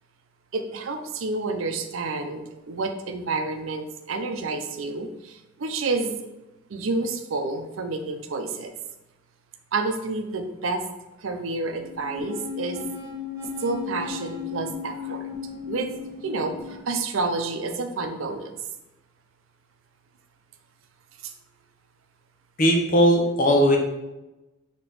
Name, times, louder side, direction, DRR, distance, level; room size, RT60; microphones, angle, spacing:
voice 1, 0.5-6.2 6.7-8.8 9.7-10.8 11.2-12.8 13.6-15.2 15.7-15.9 16.2-18.5 21.2-21.3, right 3 dB, 80° right, 5 dB, 0.5 m, -29 dB
sound 1, 11.6-16.8, left 7 dB, 15° right, 0.9 m, -36 dB
voice 2, 22.6-23.8, equal, 45° left, 2 dB, 0.7 m, -18 dB
5.4 x 2.9 x 3.3 m, 1.0 s
head